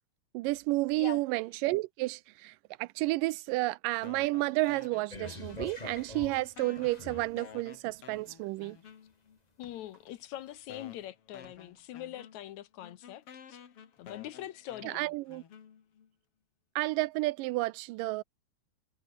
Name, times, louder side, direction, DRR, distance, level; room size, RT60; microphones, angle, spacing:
voice 1, 0.3-8.8 14.8-15.4 16.8-18.2, right 20 dB, 85° right, 2.3 m, -31 dB
sound 1, 4.0-5.9 6.1-9.4 10.1-10.2 10.7-16.1, left 8 dB, 50° left, 2.7 m, -52 dB
sound 2, 5.1-7.4 8.1-8.2, left 2 dB, 15° left, 2.3 m, -44 dB
sound 3, 7.8-8.6 8.9-11.0 11.3-12.0, right 3 dB, 30° right, 5.6 m, -64 dB
voice 2, 9.6-13.6 14.0-15.0, left 13 dB, 70° left, 2.0 m, -43 dB
omnidirectional pair, 3.8 m